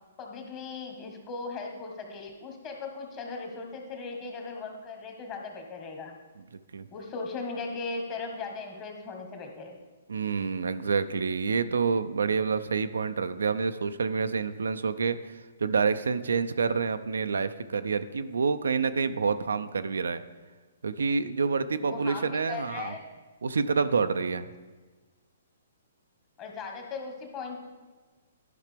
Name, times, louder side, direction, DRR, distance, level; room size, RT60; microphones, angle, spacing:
voice 1, 0.2-6.2 6.9-9.8 21.8-23.0 26.4-27.6, left 4 dB, 30° left, 2 dB, 1.5 m, -38 dB
voice 2, 10.1-15.2 15.6-20.2 20.8-22.9 23.4-24.5, right 5 dB, 80° right, 11 dB, 0.4 m, -28 dB
11.5 x 5.7 x 3.4 m, 1.3 s
hypercardioid pair, 135°, 0 cm